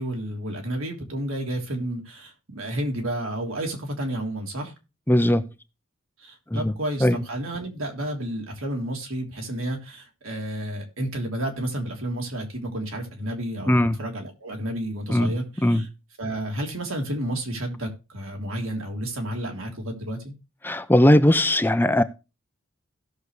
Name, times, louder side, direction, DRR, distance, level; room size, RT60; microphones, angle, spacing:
voice 1, 0.0-4.7 6.2-15.9 16.2-20.3, right 1 dB, 80° right, 3.2 m, -31 dB
voice 2, 5.1-5.4 6.5-6.7 7.0-7.2 13.7-14.0 15.1-15.3 15.6-15.8 20.6-22.0, left 1 dB, 10° left, 0.6 m, -19 dB
17.0 x 6.7 x 3.2 m
head